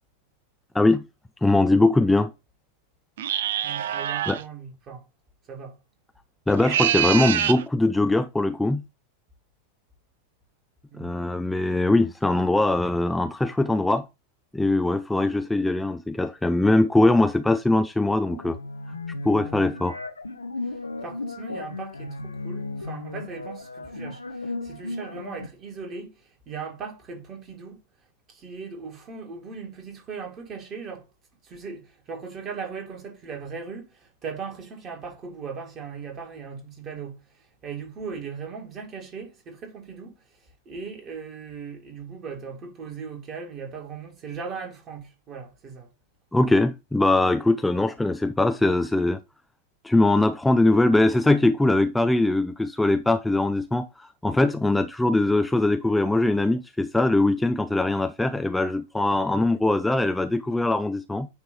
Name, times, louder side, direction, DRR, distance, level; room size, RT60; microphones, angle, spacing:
voice 1, 1.4-2.3 4.3-4.4 6.5-8.8 11.0-14.0 14.5-18.6 19.2-20.0 46.3-49.2 49.8-61.3, left 2 dB, 5° left, 0.4 m, -21 dB
sound 1, 3.2-4.4 6.5-7.6, right 10 dB, 60° right, 0.4 m, -25 dB
voice 2, 3.6-5.1 5.5-5.8 10.9-11.1 20.6-27.8 28.3-31.1 31.4-40.2 40.7-45.9, right 5 dB, 30° right, 2.4 m, -38 dB
sound 2, 18.3-25.5, left 3 dB, 80° left, 0.9 m, -35 dB
9.5 x 3.3 x 4.2 m
figure-of-eight pair, 90°, 0 cm